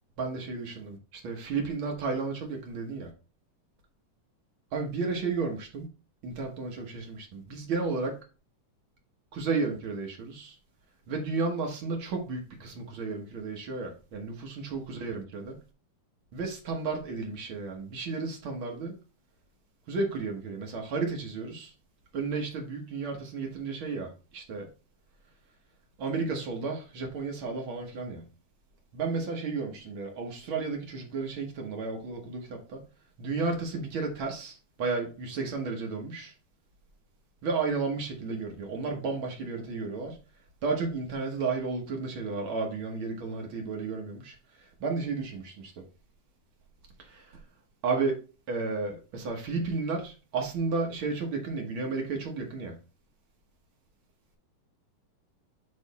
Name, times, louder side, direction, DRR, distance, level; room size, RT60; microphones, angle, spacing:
voice 1, 0.2-3.1 4.7-5.9 6.2-8.2 9.3-10.5 11.1-15.6 16.3-18.9 19.9-21.7 22.1-24.7 26.0-28.2 28.9-32.8 33.2-36.3 37.4-40.2 40.6-45.8 47.0-47.4 47.8-52.8, right 4 dB, 60° right, 1.3 m, -33 dB
8.9 x 3.2 x 4.1 m
omnidirectional pair, 4.0 m